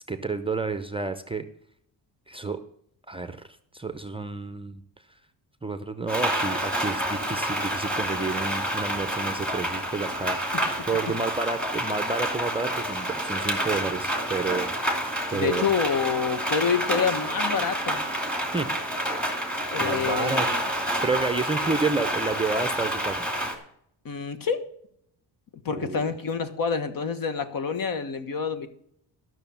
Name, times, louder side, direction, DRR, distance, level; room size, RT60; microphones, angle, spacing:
voice 1, 0.1-1.5 2.3-2.6 3.1-3.5 3.7-4.8 5.6-10.5 10.9-14.9 15.3-15.7 18.5-18.7 19.8-20.5 21.0-23.3 25.8-26.1, right 3 dB, 15° right, 10 dB, 0.6 m, -30 dB
Rain, 6.1-23.6, right 1 dB, ahead, 2.4 m, -28 dB
voice 2, 15.3-18.0 19.7-20.6 24.0-24.6 25.6-28.7, left 6 dB, 50° left, 11 dB, 1.3 m, -27 dB
13.0 x 6.3 x 7.0 m, 0.69 s
cardioid pair, 140°, 42 cm